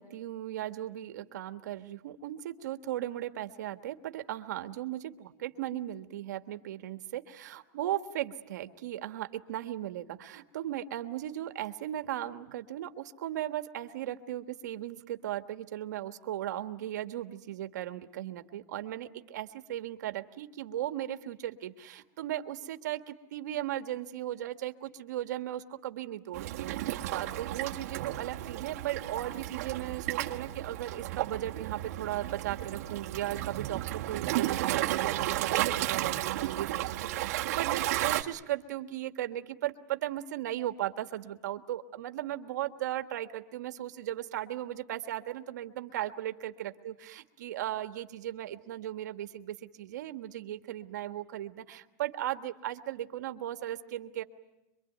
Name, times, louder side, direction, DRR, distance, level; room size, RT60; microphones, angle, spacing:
voice 1, 0.0-54.2, right 13 dB, 75° right, 8 dB, 1.5 m, -37 dB
Waves surf, 26.3-38.2, right 15 dB, 55° right, 1.4 m, -33 dB
25.5 x 24.0 x 9.3 m, 0.94 s
supercardioid pair, 180°, 10 cm